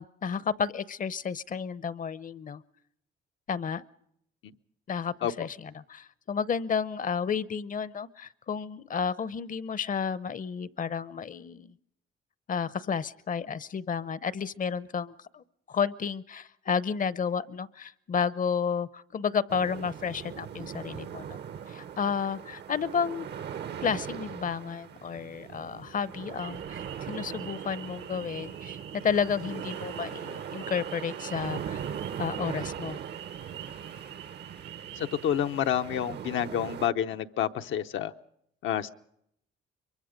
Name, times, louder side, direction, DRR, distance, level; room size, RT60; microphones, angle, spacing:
voice 1, 0.0-2.6 3.5-3.8 4.9-11.7 12.5-21.4 21.7-23.3 23.8-31.8 32.2-33.0, left 6 dB, 40° left, 18 dB, 0.7 m, -32 dB
sound 1, 19.5-36.9, right 8 dB, 60° right, 0.8 m, -40 dB
sound 2, 26.4-35.3, right 10 dB, 85° right, 6.6 m, -47 dB
voice 2, 35.0-38.1 38.6-38.9, left 10 dB, 75° left, 8 dB, 0.8 m, -29 dB
23.5 x 23.0 x 5.2 m, 0.74 s
cardioid pair, 90°, 20 cm